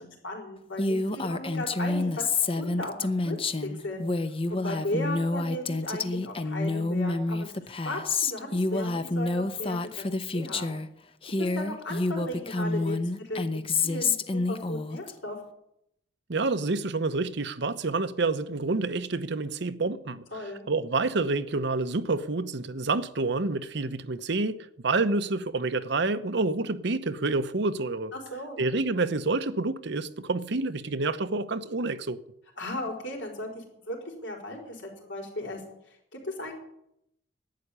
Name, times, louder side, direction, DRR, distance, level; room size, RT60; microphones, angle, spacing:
voice 1, 0.0-4.1 4.5-10.8 11.4-15.4 20.3-20.7 28.1-28.6 32.6-35.6 36.1-36.5, left 1 dB, 80° left, 4.4 m, -36 dB
Female speech woman speaking, 0.8-10.9 11.2-15.1, left 3 dB, 30° left, 0.8 m, -28 dB
voice 2, 16.3-28.1 28.6-32.2, right 3 dB, 70° right, 0.9 m, -28 dB
11.5 x 9.3 x 9.9 m
head